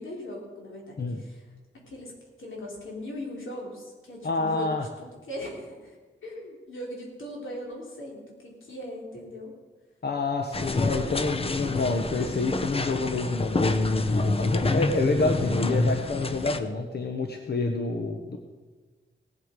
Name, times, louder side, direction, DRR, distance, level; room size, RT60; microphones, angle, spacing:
voice 1, 0.0-1.5 1.9-2.1 2.4-4.7 5.0-6.0 6.2-9.6, left 1 dB, 85° left, -2 dB, 3.9 m, -39 dB
voice 2, 4.2-4.9 10.0-18.4, left 3 dB, 55° left, 4 dB, 1.0 m, -27 dB
sound 1, 10.5-16.6, left 2 dB, 30° left, 0.7 m, -28 dB
18.0 x 8.1 x 5.2 m, 1.3 s
wide cardioid pair, 130°, 20 cm